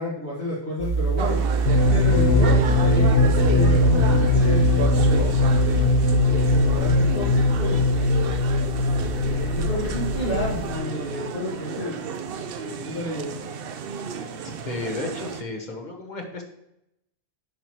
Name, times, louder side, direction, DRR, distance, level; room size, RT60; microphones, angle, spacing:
voice 1, 0.0-1.4 1.9-5.3 5.6-8.1 9.2-12.0 12.6-13.4 14.8-15.1, left 1 dB, 65° left, -8 dB, 2.2 m, -31 dB
sound 1, 0.8-10.8, right 5 dB, 25° right, 0.7 m, -28 dB
sound 2, 1.2-15.4, right 6 dB, 60° right, 0.8 m, -32 dB
sound 3, 1.7-11.3, left 2 dB, 80° left, 1.1 m, -21 dB
voice 2, 14.6-16.4, left 2 dB, 45° left, 2 dB, 1.3 m, -32 dB
9.6 x 5.8 x 3.1 m, 0.84 s
omnidirectional pair, 1.1 m